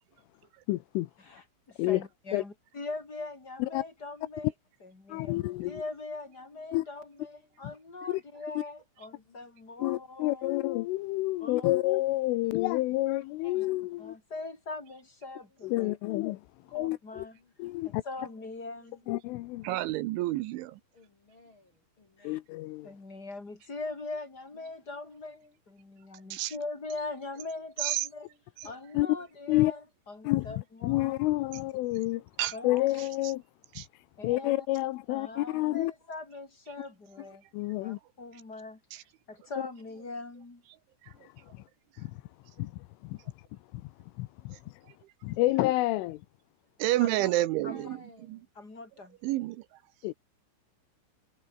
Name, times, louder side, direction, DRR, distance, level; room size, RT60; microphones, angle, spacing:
voice 1, 0.7-1.1 1.8-2.0 2.3-2.4 3.6-3.8 5.1-5.8 6.7-6.9 8.1-8.2 8.6-8.7 9.8-14.2 15.6-16.4 16.7-17.3 17.6-18.0 19.1-19.7 22.3-22.9 29.0-29.2 29.5-29.7 30.3-30.5 30.8-32.2 32.6-33.4 33.8-33.9 34.2-35.9 37.5-38.0 42.0-42.1 42.6-42.7 43.0-43.2 43.7-43.9 44.2-44.6 45.2-46.2 50.0-50.1, left 18 dB, 85° left, 3.3 m, -29 dB
voice 2, 1.2-4.5 4.8-10.5 11.4-11.7 13.4-13.6 14.0-15.9 16.7-17.4 17.8-19.1 22.2-22.4 22.8-25.4 25.7-28.3 28.6-31.2 32.5-32.9 34.2-34.7 35.1-37.4 37.8-38.8 39.3-40.6 45.3-45.4 47.0-47.3 47.6-47.9 48.5-49.2, left 3 dB, 20° left, 4.7 m, -42 dB
voice 3, 17.1-17.5 18.6-19.1 20.9-21.7 22.0-22.4 24.5-24.7 25.0-25.5 28.2-28.4 40.0-40.2 47.3-48.3, left 2 dB, 35° left, 2.3 m, -59 dB
voice 4, 19.6-20.8 26.3-26.5 27.8-28.1 32.4-32.5 33.8-33.9 38.9-39.0 46.8-48.0 49.2-49.6, right 16 dB, 75° right, 3.1 m, -29 dB
omnidirectional pair, 5.8 m